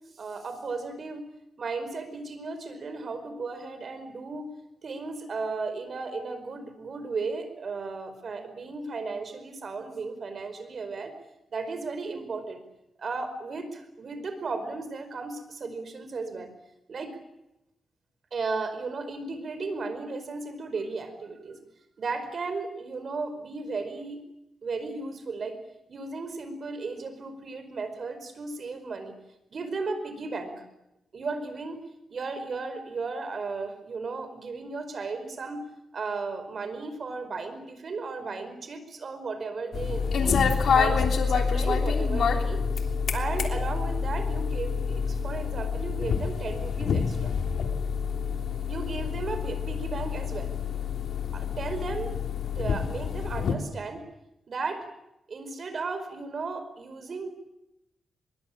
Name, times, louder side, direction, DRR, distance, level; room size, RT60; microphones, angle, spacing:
voice 1, 0.2-1.2 1.6-4.5 4.8-11.1 11.5-12.6 13.0-16.5 16.9-17.2 18.3-21.6 22.0-24.2 24.6-25.6 25.9-29.1 29.5-30.6 31.1-31.8 32.1-35.6 35.9-40.4 40.7-47.3 48.7-50.5 51.3-52.2 52.5-54.0 54.5-54.8 55.3-57.3, right 4 dB, 45° right, 9 dB, 5.0 m, -35 dB
sound 1, 39.7-53.5, left 6 dB, 70° left, 3.2 m, -27 dB
24.0 x 22.5 x 8.9 m, 0.87 s
wide cardioid pair, 140°, 0 cm